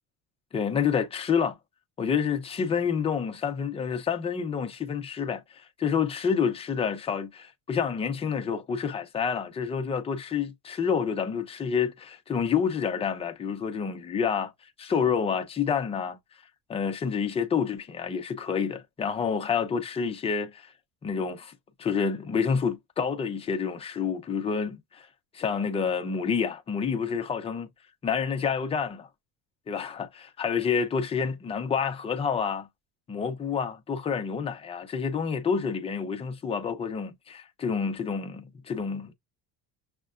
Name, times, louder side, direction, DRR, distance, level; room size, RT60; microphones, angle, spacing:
voice 1, 0.5-1.6 2.0-14.5 14.8-16.2 16.7-20.7 21.0-21.5 21.8-25.1 25.3-27.7 28.0-29.1 29.7-32.7 33.1-39.1, left 6 dB, 15° left, 0.4 m, -28 dB
6.3 x 2.1 x 2.4 m
cardioid pair, 165°, 37 cm